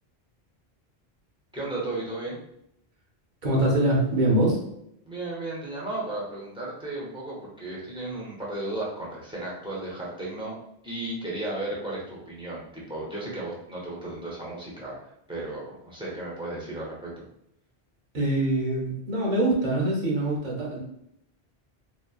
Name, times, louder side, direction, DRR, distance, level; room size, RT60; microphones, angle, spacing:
voice 1, 1.5-2.4 5.1-10.5 10.8-17.2, right 2 dB, 5° right, -6 dB, 0.6 m, -34 dB
voice 2, 3.4-4.6 18.1-20.8, right 1 dB, 50° right, -3 dB, 0.8 m, -24 dB
2.9 x 2.1 x 2.3 m, 0.76 s
omnidirectional pair, 1.0 m